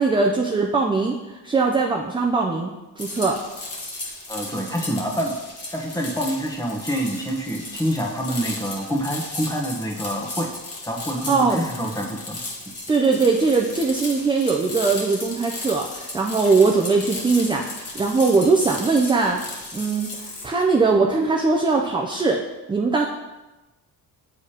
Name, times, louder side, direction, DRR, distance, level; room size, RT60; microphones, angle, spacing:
voice 1, 0.0-3.4 11.3-11.6 12.9-19.4 19.7-22.4 22.7-23.0, right 4 dB, 15° right, 0 dB, 0.4 m, -21 dB
sound 1, 3.0-20.5, left 2 dB, 35° left, 1.4 m, -35 dB
voice 2, 4.3-5.4 5.7-10.5 10.8-12.4, equal, 10° left, 0 dB, 1.0 m, -26 dB
7.0 x 5.0 x 2.8 m, 1.1 s
cardioid pair, 100°, 41 cm